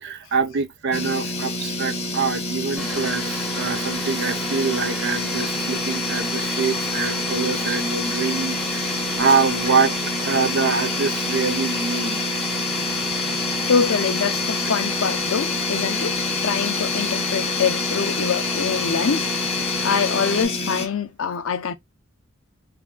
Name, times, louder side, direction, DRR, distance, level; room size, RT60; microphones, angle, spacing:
voice 1, 0.0-8.9 9.2-10.0 10.2-12.2, right 5 dB, 55° right, 0.6 m, -24 dB
sound 1, 0.9-20.9, left 2 dB, 30° left, 0.7 m, -28 dB
Domestic sounds home sounds, 2.8-20.5, left 3 dB, ahead, 1.0 m, -29 dB
voice 2, 13.7-19.3 19.8-21.7, left 6 dB, 75° left, 0.6 m, -24 dB
3.5 x 2.2 x 2.3 m
head